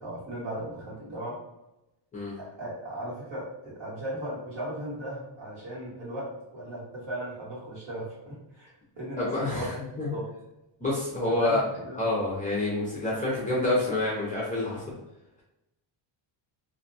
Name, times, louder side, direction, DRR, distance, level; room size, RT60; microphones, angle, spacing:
voice 1, 0.0-1.4 2.4-10.3 11.4-12.0, right 1 dB, 60° right, -7 dB, 1.4 m, -37 dB
voice 2, 9.2-10.1 10.8-11.6 12.0-14.8, left 2 dB, 15° left, -6 dB, 0.4 m, -28 dB
2.6 x 2.1 x 2.6 m, 0.95 s
cardioid pair, 170°, 49 cm